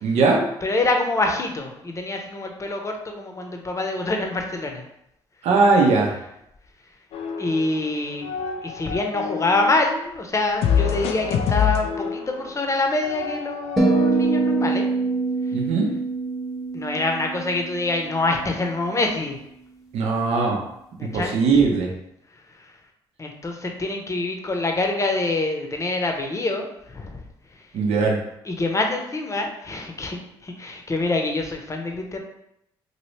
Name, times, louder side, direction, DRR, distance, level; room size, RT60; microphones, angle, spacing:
voice 1, 0.0-0.4 5.4-6.1 15.5-15.9 19.9-20.6 21.1-21.9 27.7-28.2, right 4 dB, 70° right, -1 dB, 0.8 m, -19 dB
voice 2, 0.6-4.8 7.4-8.3 8.6-14.9 16.7-19.4 21.0-21.4 23.2-27.2 28.5-32.2, left 2 dB, 25° left, 3 dB, 0.7 m, -25 dB
sound 1, 7.1-9.8 10.6-14.7, left 7 dB, 65° left, 0.4 m, -27 dB
sound 2, 13.8-18.1, right 3 dB, ahead, 0.9 m, -24 dB
2.9 x 2.7 x 3.1 m, 0.80 s
supercardioid pair, 60°, 11 cm